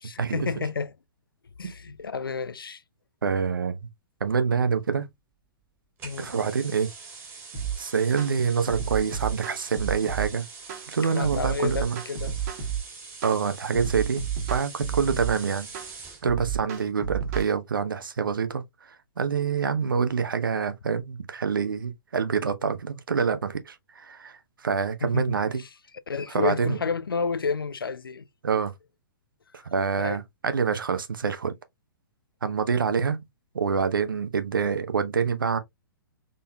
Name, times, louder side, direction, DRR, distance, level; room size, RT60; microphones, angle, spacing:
voice 1, 0.0-0.9 1.6-2.8 6.0-6.3 11.0-12.4 14.9-15.0 25.0-25.7 26.1-28.3 30.0-30.2, left 5 dB, 80° left, 0.4 m, -31 dB
voice 2, 3.2-3.8 4.2-5.1 6.2-6.9 7.8-10.5 10.9-12.0 13.2-15.7 16.2-18.6 19.2-25.6 26.3-26.8 28.4-28.7 29.5-31.5 32.4-33.2 33.5-35.6, right 6 dB, 70° right, 0.8 m, -26 dB
sound 1, 6.0-16.3, right 4 dB, 15° right, 2.0 m, -44 dB
sound 2, 7.5-7.8 8.2-8.3 8.7-10.3 10.7-10.9 11.2-12.8 13.2-13.4 13.7-15.3 15.7-15.9 16.3-17.5, right 8 dB, 40° right, 1.4 m, -31 dB
3.9 x 3.8 x 2.2 m
figure-of-eight pair, 120°, 12 cm